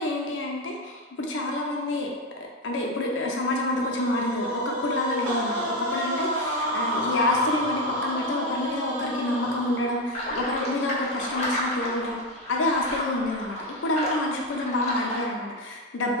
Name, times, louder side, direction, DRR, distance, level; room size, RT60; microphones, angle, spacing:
voice 1, 0.0-2.1 2.6-12.2 12.5-16.2, left 1 dB, 80° left, 0 dB, 0.5 m, -28 dB
sound 1, 3.8-10.1, equal, 75° right, 0.8 m, -30 dB
sound 2, 10.1-15.2, equal, 35° left, 0.5 m, -32 dB
3.1 x 2.2 x 3.0 m, 1.4 s
head